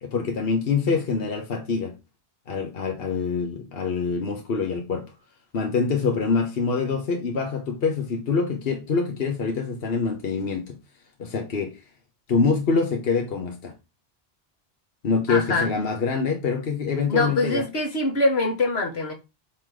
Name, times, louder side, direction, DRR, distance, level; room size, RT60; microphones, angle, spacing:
voice 1, 0.0-1.9 2.5-5.1 5.5-10.8 11.2-11.8 12.3-13.7 15.0-17.6, left 4 dB, 70° left, 1.2 m, -25 dB
voice 2, 15.3-15.7 17.1-19.1, left 2 dB, 85° left, 1.7 m, -23 dB
7.5 x 3.2 x 3.9 m
omnidirectional pair, 1.0 m